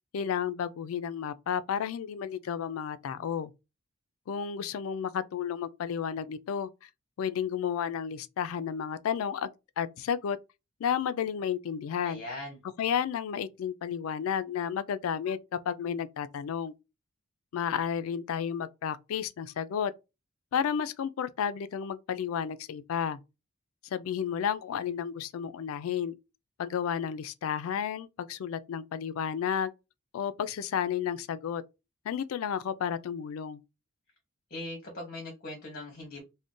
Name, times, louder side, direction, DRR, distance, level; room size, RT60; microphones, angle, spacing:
voice 1, 0.1-3.5 4.3-6.9 7.2-9.5 9.8-10.4 10.8-12.2 12.8-15.4 15.7-16.7 17.5-19.9 20.5-23.2 23.9-26.1 26.6-29.7 30.1-31.6 32.1-33.6, left 8 dB, 65° left, 0.3 m, -32 dB
voice 2, 12.0-12.6 34.5-36.2, left 1 dB, 45° left, 0.8 m, -40 dB
2.4 x 2.1 x 3.6 m
head